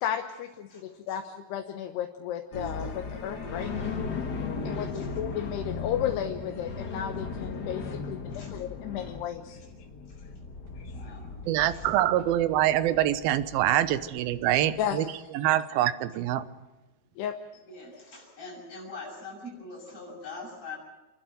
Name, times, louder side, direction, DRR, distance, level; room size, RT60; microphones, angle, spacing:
voice 1, 0.0-3.7 4.6-9.6 10.8-11.1 14.8-15.2 17.2-17.4, left 10 dB, 90° left, 5 dB, 3.2 m, -34 dB
voice 2, 0.7-1.2 2.6-2.7 4.6-5.1 8.3-8.5 9.6-9.7 10.1-10.5 10.9-11.9 12.6-12.7 13.8-13.9 17.7-20.8, left 3 dB, 35° left, -4 dB, 7.8 m, -44 dB
sound 1, 2.5-15.0, left 4 dB, 65° left, 1.0 m, -37 dB
voice 3, 11.5-15.0 15.3-16.4, right 13 dB, 75° right, 13 dB, 2.7 m, -25 dB
29.0 x 12.0 x 9.2 m, 1.1 s
omnidirectional pair, 4.6 m